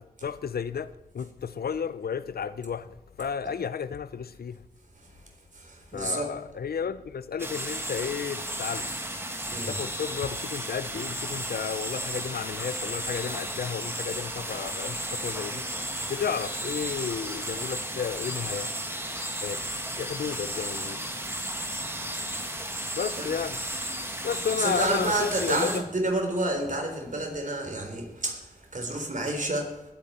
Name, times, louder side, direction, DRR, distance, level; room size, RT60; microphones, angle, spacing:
voice 1, 0.0-4.6 5.9-9.0 9.7-15.7 16.1-18.8 19.4-19.7 20.0-21.1 22.9-23.6 24.2-25.8, left 7 dB, 80° left, 0.6 m, -32 dB
voice 2, 5.5-6.3 9.5-9.8 22.4-22.7 23.2-23.3 24.6-29.8, right 2 dB, 55° right, 3.6 m, -30 dB
sound 1, 7.4-25.8, right 1 dB, 15° right, 2.0 m, -34 dB
20.0 x 8.8 x 4.3 m
cardioid pair, 45°, 16 cm